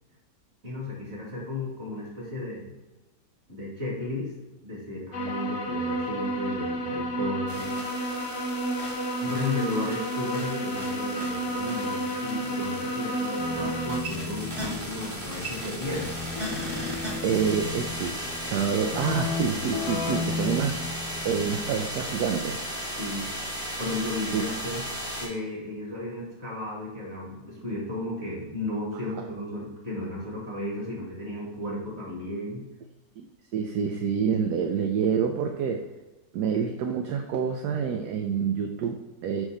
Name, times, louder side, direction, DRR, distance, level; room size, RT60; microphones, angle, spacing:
voice 1, 0.6-2.7 3.5-4.3 4.6-7.8 9.2-16.1 23.0-23.3 23.8-24.9 25.2-32.6, left 2 dB, 40° right, -4 dB, 2.3 m, -34 dB
sound 1, 5.1-14.0, right 1 dB, 55° left, 1.0 m, -31 dB
sound 2, 7.5-25.3, equal, 15° right, 1.3 m, -36 dB
Keyboard (musical), 13.4-21.8, left 4 dB, 75° left, 1.2 m, -35 dB
voice 2, 17.2-18.1 18.4-20.8 21.2-22.6 24.3-24.4 33.2-33.3 33.5-35.9 36.3-39.4, right 7 dB, 75° right, 4 dB, 1.1 m, -27 dB
6.2 x 5.5 x 3.8 m, 1.1 s
omnidirectional pair, 1.9 m